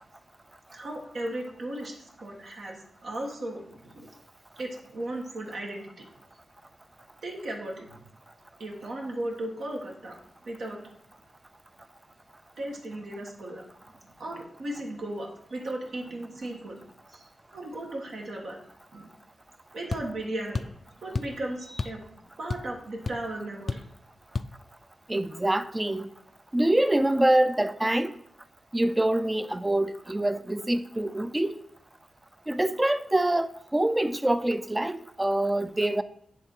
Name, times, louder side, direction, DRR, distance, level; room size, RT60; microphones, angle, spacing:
voice 1, 0.7-4.1 4.6-6.0 7.2-8.0 8.6-10.2 10.5-10.8 12.6-13.6 14.2-16.8 17.1-17.3 17.5-18.6 18.9-19.1 19.7-20.6 21.0-22.0 22.4-23.8, right 1 dB, 75° right, 1.6 m, -36 dB
sound 1, 19.9-20.1 20.5-20.8 21.1-21.4 21.8-22.0 22.3-22.8 23.1-23.2 23.7-23.9 24.3-24.5, left 3 dB, 50° left, 0.4 m, -31 dB
voice 2, 25.1-26.1 26.5-28.1 28.7-31.5 32.5-36.0, right 1 dB, 20° right, 0.5 m, -25 dB
9.9 x 3.6 x 4.6 m
cardioid pair, 50°, 0 cm